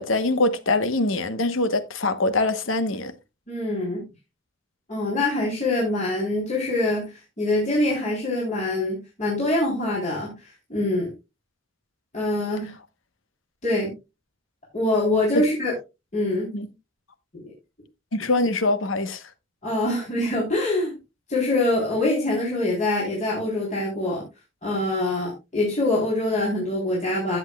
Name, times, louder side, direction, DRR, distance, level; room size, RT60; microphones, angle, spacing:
voice 1, 0.0-3.1 15.3-15.4 16.5-16.7 18.1-19.2, left 2 dB, 85° left, 1.1 m, -23 dB
voice 2, 3.5-4.0 4.9-11.1 12.1-12.7 13.6-13.9 14.7-15.7 16.1-16.5 17.3-17.5 19.6-21.0 21.3-24.2 24.6-27.4, left 2 dB, 40° left, 3.6 m, -24 dB
14.5 x 8.3 x 2.3 m
head